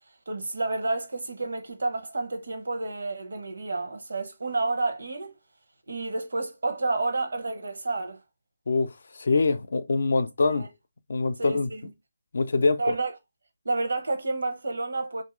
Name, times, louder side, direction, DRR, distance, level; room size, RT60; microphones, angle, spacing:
voice 1, 0.3-5.3 5.9-8.2 10.4-10.7 11.4-11.8 12.8-13.1 13.6-15.2, right 2 dB, 70° right, 0.9 m, -30 dB
voice 2, 8.7-10.7 11.1-11.7 12.3-12.8, left 3 dB, 60° left, 0.4 m, -24 dB
2.9 x 2.6 x 3.5 m
figure-of-eight pair, 150°, 0 cm